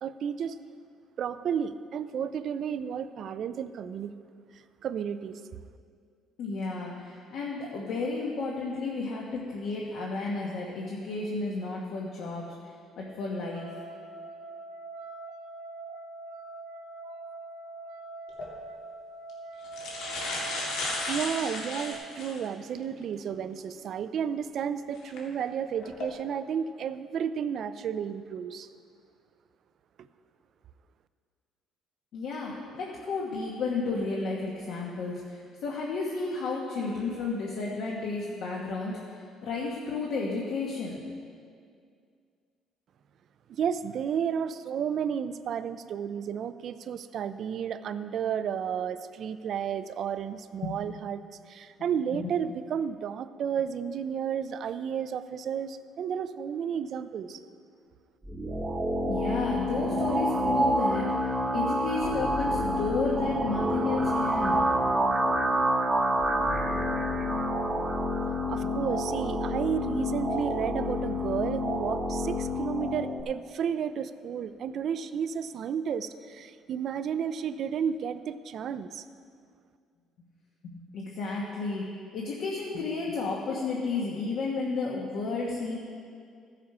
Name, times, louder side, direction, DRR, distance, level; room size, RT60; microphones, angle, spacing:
voice 1, 0.0-0.6 1.2-4.1 4.5-5.4 20.7-20.8 21.1-28.7 30.0-30.1 43.5-51.2 51.5-57.4 68.5-79.0, right 8 dB, 45° right, 13 dB, 0.4 m, -32 dB
voice 2, 6.4-12.5 13.0-13.7 32.1-41.0 50.6-50.7 52.1-52.3 59.1-61.1 61.5-64.6 67.8-67.9 68.6-68.7 80.6-81.9 82.1-85.8, left 3 dB, 55° left, -3 dB, 1.3 m, -32 dB
sound 1, 13.3-21.9, right 3 dB, 80° right, 1.1 m, -43 dB
sound 2, 18.3-18.5 19.3-19.4 19.6-22.5 23.0-23.1 25.0-25.2 25.8-26.1, left 2 dB, 80° left, 2.2 m, -34 dB
sound 3, 58.2-73.2, equal, 15° right, 0.7 m, -28 dB
15.0 x 7.3 x 4.8 m, 2.2 s
cardioid pair, 175°, 0 cm